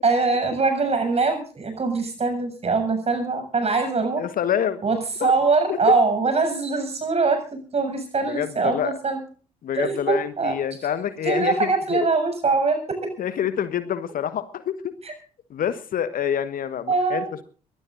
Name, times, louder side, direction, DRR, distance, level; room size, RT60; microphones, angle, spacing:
voice 1, 0.0-4.2 4.8-9.2 9.7-10.5 11.2-12.8 16.9-17.3, right 4 dB, 35° right, 8 dB, 7.2 m, -22 dB
voice 2, 4.2-4.8 5.2-5.3 5.7-5.9 8.2-8.9 9.6-12.1 13.2-14.9 15.5-17.4, left 9 dB, 50° left, 13 dB, 1.4 m, -27 dB
23.0 x 18.5 x 2.6 m, 0.40 s
figure-of-eight pair, 50°, 19 cm